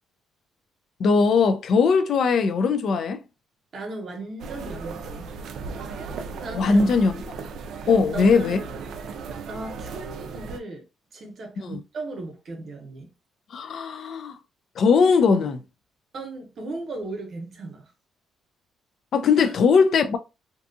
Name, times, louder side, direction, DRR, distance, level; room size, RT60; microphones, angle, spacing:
voice 1, 1.0-3.2 6.5-7.1 7.9-8.6 13.5-14.4 14.8-15.6 19.1-20.2, left 5 dB, 50° left, 0.3 m, -19 dB
voice 2, 3.7-5.3 6.3-7.0 7.8-8.9 9.4-10.8 11.1-13.1 16.1-17.9 19.4-19.6, right 2 dB, 45° right, 0.8 m, -36 dB
sound 1, 4.4-10.6, right 4 dB, 70° right, 0.3 m, -36 dB
2.6 x 2.3 x 2.5 m
cardioid pair, 150°, 0 cm